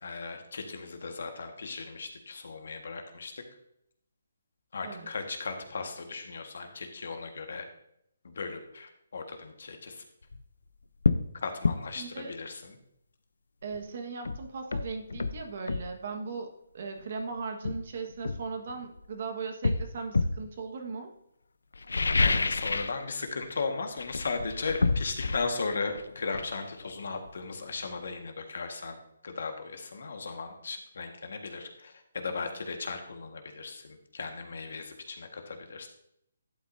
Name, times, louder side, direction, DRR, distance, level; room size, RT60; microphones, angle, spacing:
voice 1, 0.0-3.3 4.7-7.7 8.2-10.0 11.4-12.8 22.2-29.0 29.2-35.9, left 4 dB, 65° left, 5 dB, 1.5 m, -36 dB
sound 1, 10.2-10.4 11.0-11.3 11.6-11.8 13.7-13.8 14.3-15.9 17.0-17.1 17.6-19.0 19.6-20.4 21.7-23.0 23.3-23.6 23.9-27.5 27.8-27.9, left 3 dB, 90° left, 0.6 m, -29 dB
voice 2, 12.0-12.3 13.6-21.1, right 4 dB, 50° right, 4 dB, 1.5 m, -38 dB
11.0 x 8.5 x 2.7 m, 0.76 s
hypercardioid pair, 165°, 0 cm